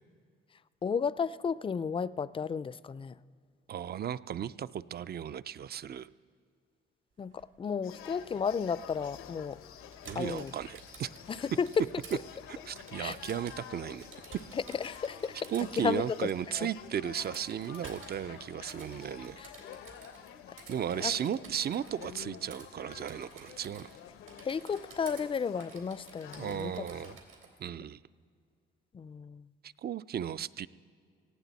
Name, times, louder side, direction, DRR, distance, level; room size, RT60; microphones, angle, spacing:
voice 1, 0.8-3.1 7.2-9.6 10.1-10.5 11.3-11.7 13.0-13.1 14.5-15.3 15.8-16.3 16.5-16.7 21.0-21.1 24.4-26.9 28.9-29.5, left 6 dB, 25° left, 18 dB, 0.4 m, -33 dB
voice 2, 3.7-6.1 10.1-11.1 12.5-14.1 15.5-19.5 20.7-23.9 26.4-27.2 27.6-28.0 29.6-30.7, right 9 dB, 50° right, 16 dB, 0.5 m, -35 dB
sound 1, 7.1-22.2, right 5 dB, 70° right, 2.3 m, -58 dB
sound 2, 7.8-27.2, left 9 dB, 90° left, 0.9 m, -49 dB
Typing, 9.9-12.2 12.8-13.7 14.0-15.9 17.2-18.2 18.7-20.3 20.6-22.1 22.5-22.7 22.9-24.0 24.3-25.2 25.6-27.5, right 6 dB, 85° right, 3.3 m, -53 dB
18.0 x 15.5 x 4.1 m, 2.2 s
cardioid pair, 75°, 21 cm